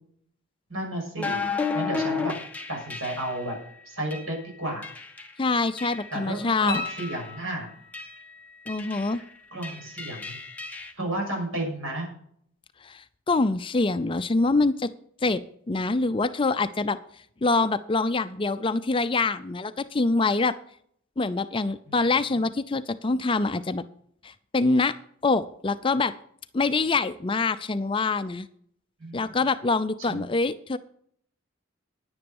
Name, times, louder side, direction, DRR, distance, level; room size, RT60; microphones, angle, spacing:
voice 1, 0.7-2.4 2.7-3.6 3.8-4.9 6.1-7.7 9.1-9.2 9.5-10.4 10.9-12.1 21.9-22.2 29.0-29.2 30.1-30.2, right 1 dB, 75° right, 0 dB, 6.5 m, -32 dB
sound 1, 1.2-3.5 4.1-4.3 4.8-5.3 5.8-6.2 6.7-7.3 7.9-8.2 8.7-9.2 9.6-10.9, left 4 dB, 5° left, 0.9 m, -33 dB
voice 2, 5.4-6.8 8.7-9.2 12.8-14.9 15.2-17.0 17.4-20.5 21.2-23.8 24.2-25.0 25.2-26.1 26.5-28.5 29.1-30.8, left 3 dB, 25° left, 13 dB, 0.4 m, -25 dB
sound 2, 6.7-8.0 10.8-10.9, left 4 dB, 40° left, 2.0 m, -36 dB
10.5 x 9.8 x 5.3 m, 0.65 s
head